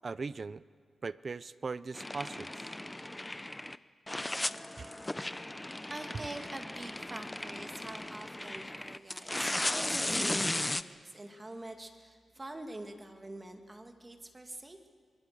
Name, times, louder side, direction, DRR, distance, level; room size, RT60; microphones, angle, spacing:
voice 1, 0.0-0.6 1.0-2.5 4.8-4.9, right 4 dB, 40° right, 17 dB, 0.5 m, -39 dB
sound 1, 1.9-3.8 4.1-10.8, left 1 dB, 10° left, 0.6 m, -36 dB
voice 2, 5.2-5.6 5.9-14.9, right 1 dB, 20° right, 5 dB, 2.0 m, -46 dB
25.5 x 22.0 x 6.6 m, 2.2 s
wide cardioid pair, 110°, 0 cm